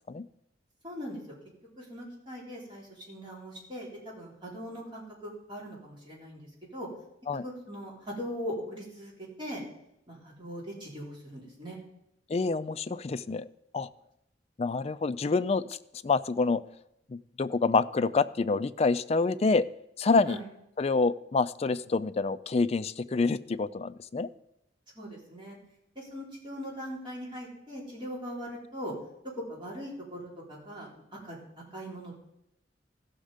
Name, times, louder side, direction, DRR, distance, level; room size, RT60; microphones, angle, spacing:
voice 1, 0.8-1.2 1.8-6.5 6.7-6.9 7.4-9.1 9.4-9.6 10.1-11.8 20.3-20.4 25.0-25.6 26.0-28.9 29.5-30.9 31.2-31.4 31.7-32.1, equal, 25° right, -4 dB, 3.7 m, -40 dB
voice 2, 12.3-13.5 13.7-13.9 14.6-15.6 16.0-16.6 17.1-19.6 20.0-20.4 20.8-24.3, left 4 dB, 35° left, 14 dB, 0.4 m, -27 dB
15.5 x 6.4 x 5.1 m, 0.81 s
head